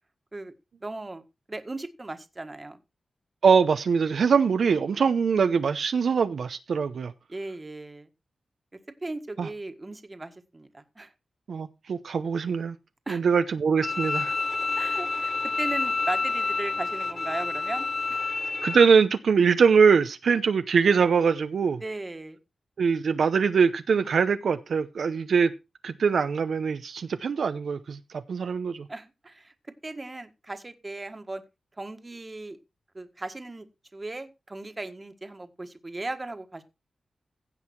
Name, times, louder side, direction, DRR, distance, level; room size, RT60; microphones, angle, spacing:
voice 1, 0.8-1.2 1.5-2.8 7.3-8.1 9.0-11.1 13.1-13.2 14.8-18.2 21.8-22.4 28.9-29.5 29.8-31.4 31.8-32.6 32.9-33.7 33.9-36.6, right 2 dB, 25° right, 1.6 m, -37 dB
voice 2, 3.4-7.1 9.4-9.5 11.5-12.8 13.1-14.4 18.6-21.8 22.8-25.5 25.8-28.9, right 6 dB, 75° right, 0.7 m, -23 dB
Bowed string instrument, 13.8-18.8, left 3 dB, 45° left, 0.7 m, -28 dB
16.0 x 5.6 x 4.4 m
wide cardioid pair, 85°, 0 cm